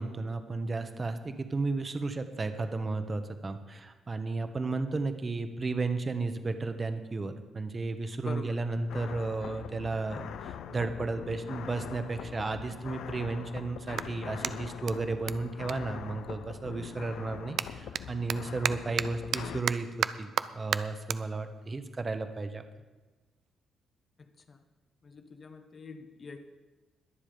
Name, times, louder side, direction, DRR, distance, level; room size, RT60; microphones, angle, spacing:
voice 1, 0.0-22.6, right 3 dB, 30° right, 8 dB, 1.1 m, -33 dB
voice 2, 8.2-8.6 24.2-24.6 25.0-26.4, left 4 dB, 35° left, 7 dB, 1.2 m, -44 dB
sound 1, 8.9-19.6, left 9 dB, 75° left, 0.7 m, -43 dB
Clapping, 13.1-16.7 17.0-23.6, right 9 dB, 65° right, 0.4 m, -37 dB
21.5 x 7.4 x 5.1 m, 1.2 s
cardioid pair, 110°, 0 cm